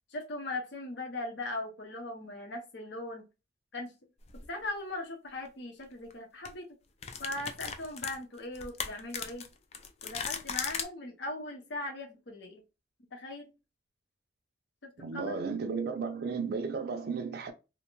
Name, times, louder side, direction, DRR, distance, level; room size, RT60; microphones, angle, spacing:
voice 1, 0.1-3.3 3.7-3.9 4.3-6.7 7.2-9.4 10.0-12.6 13.1-13.5 14.8-15.4, left 2 dB, 70° left, 0.8 m, -39 dB
sound 1, 4.3-4.5 5.9-6.1 6.5-6.6 7.0-10.9, left 6 dB, 35° left, 0.3 m, -37 dB
voice 2, 15.0-17.5, right 5 dB, 55° right, 0.4 m, -34 dB
2.5 x 2.2 x 2.9 m
head